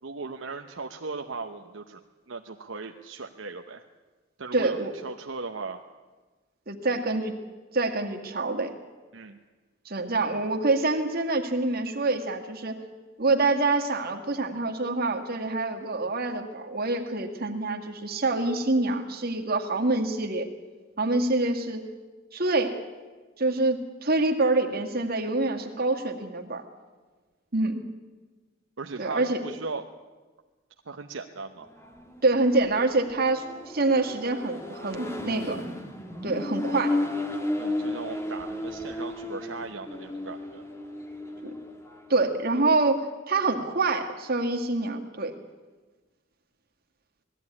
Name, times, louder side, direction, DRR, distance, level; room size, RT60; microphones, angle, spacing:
voice 1, 0.0-2.0 2.3-3.9 4.4-5.8 9.1-9.4 28.8-29.8 30.9-31.7 37.6-40.6, right 4 dB, 70° right, 4 dB, 0.9 m, -37 dB
voice 2, 4.5-4.9 6.7-7.4 7.7-8.7 9.9-12.8 13.2-20.5 21.0-21.8 22.3-22.8 23.4-26.6 27.5-27.8 29.0-29.4 32.2-35.6 36.2-37.0 41.4-41.5 42.1-45.3, right 2 dB, 50° right, 3 dB, 2.0 m, -26 dB
Accelerating revving vroom, 31.7-42.1, left 1 dB, 15° left, 1.6 m, -34 dB
19.5 x 14.0 x 9.7 m, 1.3 s
head